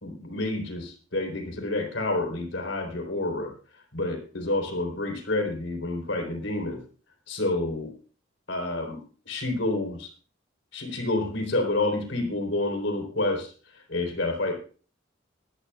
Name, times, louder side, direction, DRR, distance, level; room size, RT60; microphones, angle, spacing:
voice 1, 0.0-3.5 3.9-6.8 7.3-7.9 8.5-9.0 9.3-10.1 10.7-13.5 13.9-14.5, left 2 dB, 85° left, 3 dB, 3.8 m, -28 dB
20.0 x 14.0 x 2.4 m, 0.38 s
head